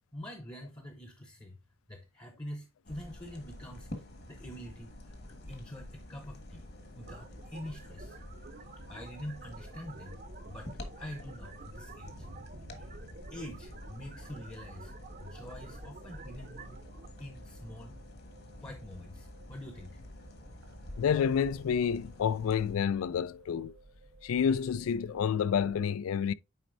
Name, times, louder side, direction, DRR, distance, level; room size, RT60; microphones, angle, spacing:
voice 1, 0.1-1.6 1.9-3.9 4.3-6.7 6.9-8.2 8.8-12.3 12.7-12.9 13.3-14.9 15.2-16.7 17.2-18.0 18.6-20.0, left 1 dB, 20° left, 0.8 m, -45 dB
sound 1, 2.8-22.7, left 1 dB, 50° left, 1.5 m, -48 dB
sound 2, 6.7-25.8, right 1 dB, 75° right, 1.3 m, -55 dB
sound 3, 7.1-17.1, right 4 dB, 40° right, 0.7 m, -52 dB
voice 2, 21.0-23.7 24.2-26.3, left 7 dB, 85° left, 0.3 m, -29 dB
9.3 x 4.2 x 2.6 m
head